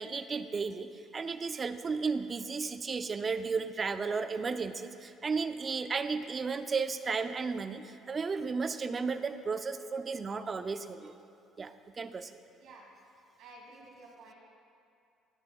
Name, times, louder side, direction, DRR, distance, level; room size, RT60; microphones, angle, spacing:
voice 1, 0.0-11.1 11.6-12.3, right 4 dB, 35° right, 10 dB, 0.4 m, -34 dB
voice 2, 13.4-14.3, right 2 dB, 75° right, -3 dB, 2.0 m, -52 dB
20.0 x 6.9 x 2.3 m, 2.5 s
cardioid pair, 95°, 0 cm